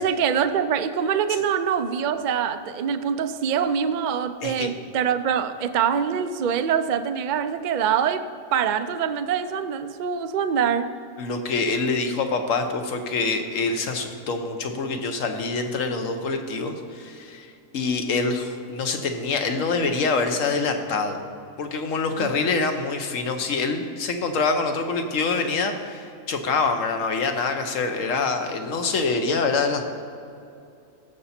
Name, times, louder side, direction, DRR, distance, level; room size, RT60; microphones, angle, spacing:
voice 1, 0.0-8.2 8.5-10.9 22.2-22.3, right 7 dB, 60° right, 10 dB, 0.5 m, -24 dB
voice 2, 4.4-4.7 11.2-17.5 17.7-21.2 21.6-29.8, left 4 dB, 70° left, 6 dB, 1.3 m, -25 dB
15.5 x 6.9 x 4.3 m, 2.6 s
omnidirectional pair, 1.4 m